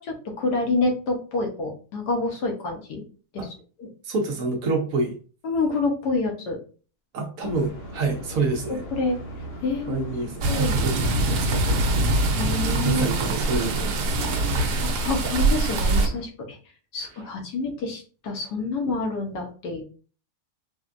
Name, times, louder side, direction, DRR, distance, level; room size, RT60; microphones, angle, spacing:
voice 1, 0.0-3.0 3.3-3.5 3.8-3.9 5.4-6.6 7.4-7.6 8.7-9.2 9.6-10.1 10.5-10.8 12.3-13.0 14.0-14.4 14.8-16.6 16.9-19.8, left 3 dB, 90° left, 2 dB, 1.4 m, -28 dB
voice 2, 4.0-5.1 7.1-8.9 9.9-12.0 12.8-14.1 14.5-14.9, right 3 dB, 65° right, 3 dB, 1.0 m, -28 dB
sound 1, 7.4-16.2, equal, 55° left, 0.7 m, -37 dB
sound 2, 10.4-16.1, right 2 dB, 85° right, 1.2 m, -23 dB
4.1 x 2.2 x 2.4 m, 0.39 s
omnidirectional pair, 1.7 m